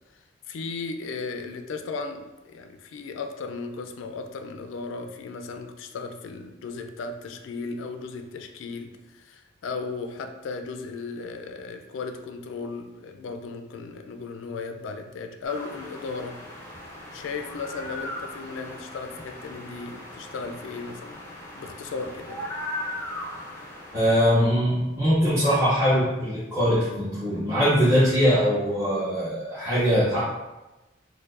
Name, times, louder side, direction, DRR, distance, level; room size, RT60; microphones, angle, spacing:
voice 1, 0.5-16.4 17.1-21.2 21.5-22.4, left 4 dB, 85° left, 7 dB, 0.3 m, -36 dB
sound 1, 15.4-24.6, left 1 dB, 10° left, 0.5 m, -38 dB
voice 2, 23.9-30.2, equal, 15° right, -14 dB, 0.9 m, -22 dB
4.4 x 2.1 x 2.4 m, 1.1 s
head